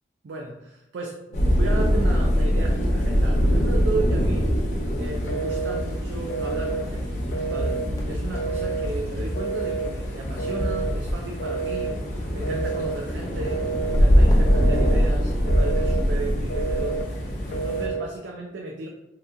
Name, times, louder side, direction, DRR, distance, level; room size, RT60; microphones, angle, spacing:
voice 1, 0.2-4.5 5.0-7.2 7.4-7.8 8.1-11.9 12.3-17.0 17.5-18.9, right 3 dB, 80° right, 0 dB, 0.4 m, -34 dB
sound 1, 1.3-17.9, equal, 40° left, 0.7 m, -23 dB
Telephone, 5.3-5.8 6.3-6.9 7.3-7.9 8.3-8.9 9.4-9.9 10.4-10.9 11.4-12.0 12.4-13.0 13.4-14.0 14.5-15.0 15.4-16.0 16.5-17.1 17.5-18.1, right 4 dB, 90° left, 0.4 m, -30 dB
sound 2, 7.8-16.9, equal, 20° left, 0.4 m, -41 dB
2.9 x 2.2 x 3.7 m, 0.94 s
head